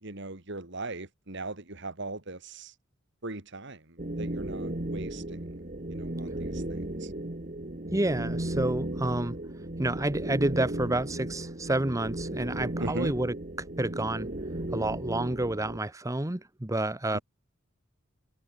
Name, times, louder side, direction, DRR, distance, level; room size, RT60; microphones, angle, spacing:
voice 1, 0.0-2.7 3.2-5.4 5.9-7.1 12.8-13.1 17.1-17.2, right 2 dB, 60° right, 2.8 m, -39 dB
sound 1, 4.0-15.8, right 1 dB, 40° right, 1.8 m, -35 dB
voice 2, 7.9-9.4 9.8-13.3 13.8-14.3 14.7-17.2, right 1 dB, 15° right, 1.0 m, -29 dB
head